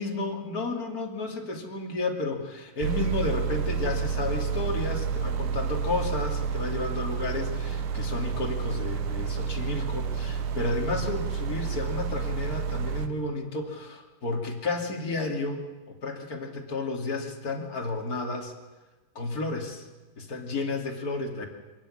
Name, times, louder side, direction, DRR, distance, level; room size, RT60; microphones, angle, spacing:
voice 1, 0.0-18.5 19.1-19.9 20.2-21.4, left 2 dB, 30° left, 1 dB, 1.9 m, -32 dB
sound 1, 2.8-13.1, right 6 dB, 70° right, 2.0 m, -30 dB
23.5 x 15.0 x 10.0 m, 1.2 s
omnidirectional pair, 5.1 m